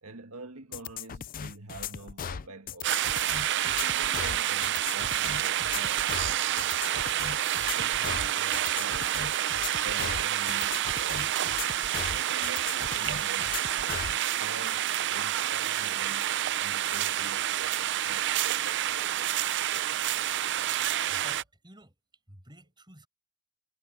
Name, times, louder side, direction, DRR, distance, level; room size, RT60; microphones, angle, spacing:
voice 1, 0.0-3.1 3.6-7.1 7.6-9.4 9.8-11.7 12.1-14.0 14.3-16.3 16.6-19.9, right 3 dB, 70° right, 1.7 m, -47 dB
sound 1, 0.7-14.2, left 8 dB, 40° left, 0.4 m, -38 dB
sound 2, 2.8-21.4, right 12 dB, 55° right, 0.5 m, -28 dB
voice 2, 21.1-22.0 22.3-23.1, right 1 dB, 20° right, 5.6 m, -51 dB
head